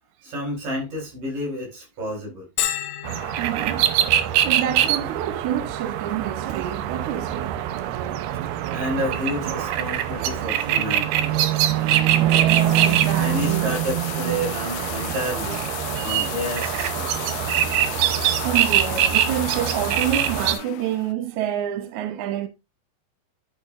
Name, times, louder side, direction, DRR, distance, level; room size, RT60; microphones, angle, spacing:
voice 1, 0.2-2.5 4.3-4.4 8.7-11.8 13.2-15.7 16.0-17.2, equal, 55° right, 5.4 m, -30 dB
Bell, 2.6-18.0, left 11 dB, 70° left, 2.1 m, -39 dB
sound 1, 3.0-20.5, right 11 dB, 90° right, 2.8 m, -23 dB
voice 2, 3.4-7.6 12.2-13.8 18.4-22.5, right 10 dB, 75° right, 1.9 m, -28 dB
sound 2, 9.3-21.1, left 17 dB, 85° left, 2.5 m, -35 dB
10.0 x 6.8 x 2.5 m
omnidirectional pair, 4.4 m